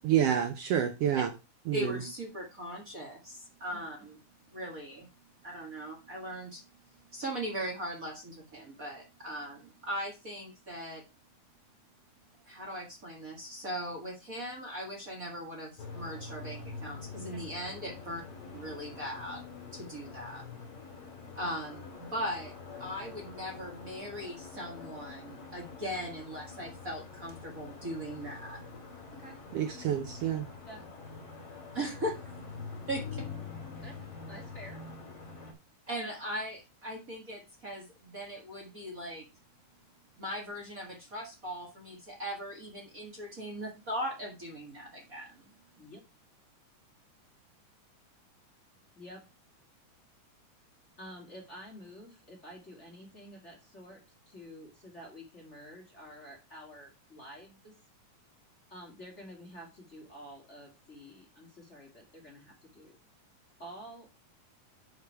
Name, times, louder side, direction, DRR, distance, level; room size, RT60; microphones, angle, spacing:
voice 1, 0.0-1.3 1.7-2.0 29.5-30.5, right 9 dB, 90° right, 1.3 m, -28 dB
voice 2, 1.7-4.2 4.5-5.1 5.4-6.6 7.1-11.0 12.3-18.2 18.5-20.4 21.3-22.5 22.8-28.6 31.7-32.2 32.9-33.2 35.9-39.2 40.2-45.4, equal, 35° right, 1.5 m, -39 dB
sound 1, 15.8-35.5, left 4 dB, 45° left, 3.2 m, -45 dB
voice 3, 34.3-34.8 45.7-46.0 48.9-49.2 51.0-57.7 58.7-63.0 63.6-64.1, equal, 25° left, 2.2 m, -49 dB
7.1 x 6.4 x 4.8 m
omnidirectional pair, 3.8 m